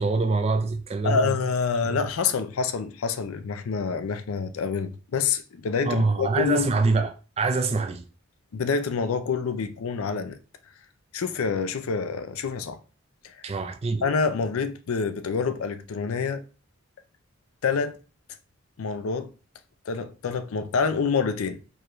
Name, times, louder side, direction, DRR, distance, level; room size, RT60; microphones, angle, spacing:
voice 1, 0.0-1.3 1.8-2.0 5.8-8.1 13.4-14.0, right 3 dB, 30° right, 0.3 m, -25 dB
voice 2, 1.0-6.7 8.5-10.4 11.1-12.8 13.2-13.3 14.0-16.4 17.6-18.0 18.8-19.3 19.9-21.7, left 5 dB, 80° left, 0.4 m, -27 dB
4.7 x 2.5 x 3.0 m
head